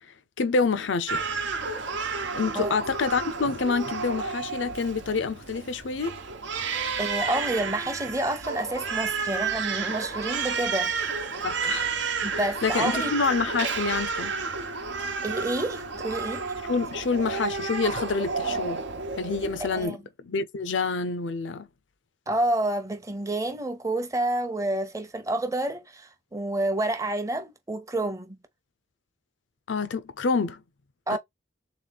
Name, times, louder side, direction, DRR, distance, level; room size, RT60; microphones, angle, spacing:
voice 1, 0.4-1.2 2.3-6.2 11.4-12.0 12.6-14.3 16.6-18.8 19.2-21.7 29.7-30.6 31.1-31.2, left 4 dB, 85° left, 0.6 m, -27 dB
Crying sobbing, 1.1-19.9, right 4 dB, 75° right, 1.0 m, -31 dB
voice 2, 7.0-11.1 12.2-13.1 15.2-16.5 19.6-20.0 22.3-28.4 31.1-31.2, right 1 dB, 15° right, 0.8 m, -29 dB
3.6 x 3.0 x 4.0 m
head